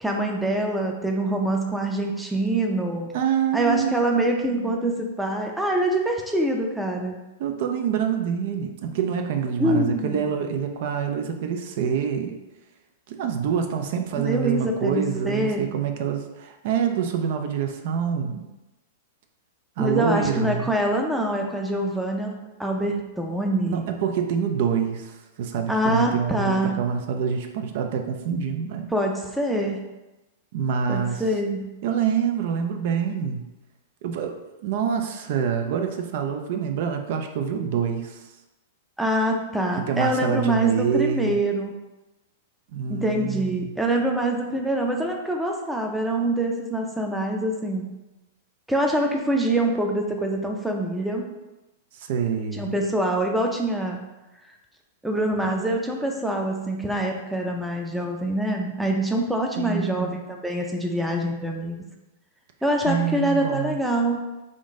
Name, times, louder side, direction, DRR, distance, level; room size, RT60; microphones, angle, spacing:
voice 1, 0.0-3.1 3.5-7.2 9.6-10.2 14.2-15.7 19.8-23.9 25.7-26.8 28.9-29.8 30.9-31.7 39.0-41.7 42.9-47.9 48.7-51.2 52.5-54.0 55.0-61.8 62.6-64.2, right 1 dB, 5° right, 1 dB, 0.5 m, -25 dB
voice 2, 3.1-4.0 4.5-4.7 7.4-12.4 13.1-18.5 19.8-20.7 23.7-28.9 30.5-31.2 31.8-33.5 34.0-38.3 39.7-41.4 42.7-43.7 51.9-52.7 59.6-60.2 62.8-63.8, right 7 dB, 60° right, 5 dB, 0.4 m, -26 dB
3.6 x 2.6 x 3.6 m, 1.0 s
hypercardioid pair, 130°, 0 cm